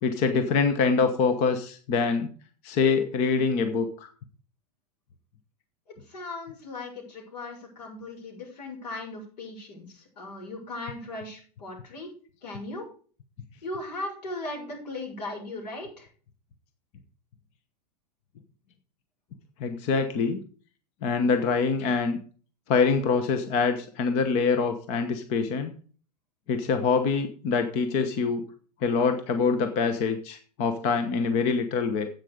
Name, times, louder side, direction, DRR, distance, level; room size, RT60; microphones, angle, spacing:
voice 1, 0.0-2.3 2.6-4.1 19.6-20.4 21.0-22.2 22.7-25.7 26.5-28.4 28.8-32.1, left 5 dB, 30° left, 8 dB, 1.0 m, -25 dB
voice 2, 6.1-12.1 12.4-12.9 13.6-16.1, left 2 dB, 90° left, 0 dB, 6.9 m, -38 dB
9.9 x 8.4 x 5.0 m, 0.40 s
supercardioid pair, 170°, 21 cm